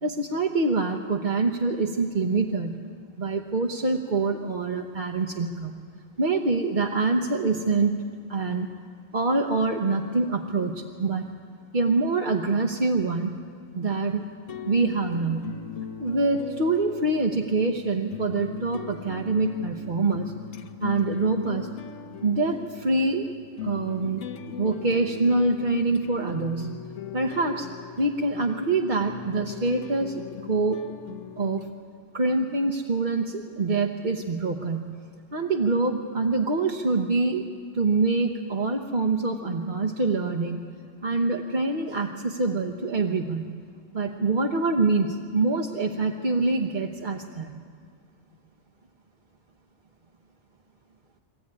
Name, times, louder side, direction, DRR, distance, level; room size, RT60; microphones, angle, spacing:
voice 1, 0.0-2.8 3.2-5.8 6.2-8.0 8.3-8.7 9.1-11.3 11.7-13.4 13.7-14.3 14.6-15.5 16.0-20.3 20.8-21.7 22.2-23.3 23.6-26.8 27.1-27.7 28.0-30.2 30.5-30.8 31.4-31.7 32.1-34.9 35.3-37.5 37.7-40.6 41.0-43.5 43.9-47.6, right 3 dB, 40° right, 2 dB, 1.1 m, -25 dB
sound 1, 14.5-31.7, left 8 dB, 80° left, 1.3 m, -39 dB
23.0 x 15.0 x 9.8 m, 2.1 s
omnidirectional pair, 1.3 m